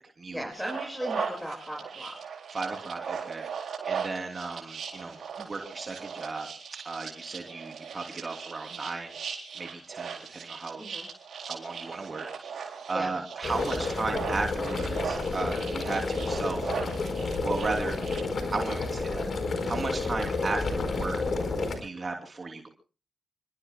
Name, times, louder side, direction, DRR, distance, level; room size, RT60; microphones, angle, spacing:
voice 1, 0.3-2.2 10.8-11.0 12.9-13.1, equal, ahead, -1 dB, 7.3 m, -36 dB
sound 1, 0.5-18.2, right 6 dB, 70° right, 4.3 m, -38 dB
voice 2, 2.5-3.5 3.9-6.5 6.8-9.2 9.5-10.8 11.4-16.7 17.4-18.0 18.5-19.2 19.7-21.2 21.8-22.7, right 3 dB, 45° right, 2 dB, 3.0 m, -35 dB
sound 2, 13.4-21.8, left 3 dB, 60° left, 4.6 m, -30 dB
29.5 x 21.5 x 2.3 m, 0.35 s
supercardioid pair, 40°, 0 cm